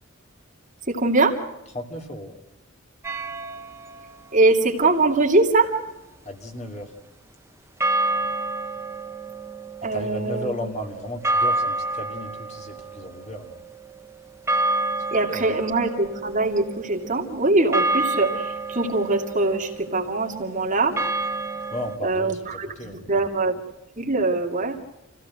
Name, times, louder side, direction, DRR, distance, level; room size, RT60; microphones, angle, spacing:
voice 1, 0.9-1.4 4.3-5.7 9.8-10.5 15.1-21.0 22.0-23.5 24.0-24.8, right 2 dB, 40° right, 1 dB, 2.6 m, -22 dB
voice 2, 1.7-2.3 6.2-6.9 9.9-13.6 15.3-15.6 21.7-23.2, left 1 dB, 35° left, 3 dB, 2.8 m, -34 dB
sound 1, 3.0-4.1 7.8-22.0, right 2 dB, 15° right, 1.0 m, -29 dB
28.0 x 16.5 x 7.8 m, 0.98 s
head